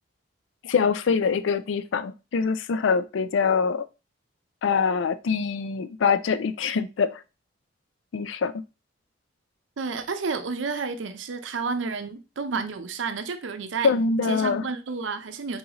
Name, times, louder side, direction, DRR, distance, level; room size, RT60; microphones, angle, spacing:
voice 1, 0.6-3.8 4.6-7.2 8.1-8.5 13.8-14.6, left 5 dB, 80° left, 0.4 m, -24 dB
voice 2, 9.8-13.9 14.3-15.6, right 4 dB, 85° right, 0.6 m, -30 dB
4.0 x 3.9 x 2.9 m
head